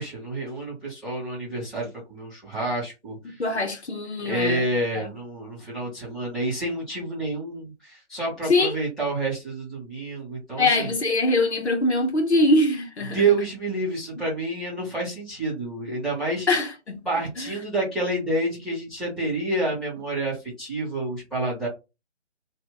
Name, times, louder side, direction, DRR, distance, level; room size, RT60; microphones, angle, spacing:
voice 1, 0.0-3.4 4.2-10.9 13.1-16.5 17.0-21.7, right 2 dB, ahead, 1.0 m, -28 dB
voice 2, 3.4-4.6 4.9-5.1 8.5-8.7 10.6-13.2 16.5-17.0 17.4-17.5, left 2 dB, 70° left, 1.2 m, -22 dB
2.7 x 2.4 x 3.9 m
figure-of-eight pair, 155°, 34 cm